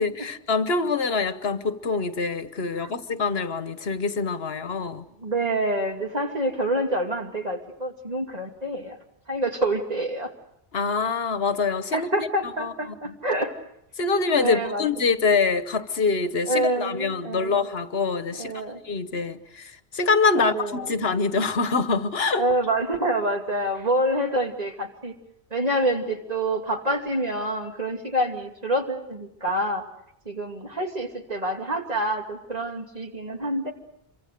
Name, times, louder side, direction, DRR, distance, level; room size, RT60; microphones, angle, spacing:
voice 1, 0.0-5.0 10.7-12.1 12.4-13.1 14.0-18.5 18.8-20.5 20.9-22.4, left 4 dB, 70° left, 1.4 m, -25 dB
voice 2, 5.2-9.0 9.3-10.3 11.9-13.6 14.4-14.8 16.5-17.6 18.4-18.8 20.4-20.9 22.4-25.2 25.5-29.8 30.2-33.7, right 1 dB, 35° right, 2.8 m, -27 dB
27.0 x 24.0 x 6.7 m
omnidirectional pair, 1.1 m